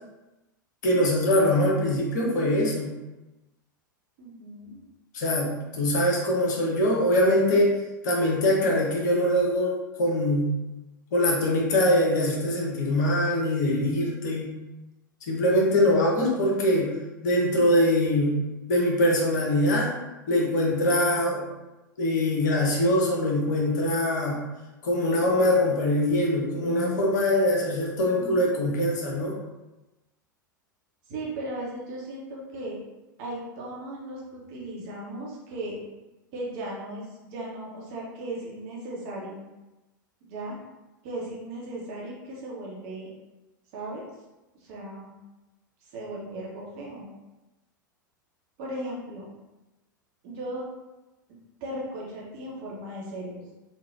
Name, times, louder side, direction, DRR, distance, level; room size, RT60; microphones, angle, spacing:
voice 1, 0.8-2.9 5.1-7.7 8.0-10.5 11.1-14.5 15.3-16.9 17.2-18.4 18.7-19.9 20.3-21.5 22.0-24.4 24.8-29.4, left 1 dB, 60° left, -2 dB, 0.7 m, -23 dB
voice 2, 4.2-4.8 31.1-32.8 33.2-35.7 36.3-39.4 40.2-40.6 41.0-43.1 43.7-44.0 44.6-45.1 45.8-47.1 48.6-49.3 50.2-50.6 51.3-53.4, right 1 dB, 45° right, -4 dB, 0.8 m, -37 dB
3.2 x 2.2 x 2.4 m, 1.1 s
figure-of-eight pair, 90°, 11 cm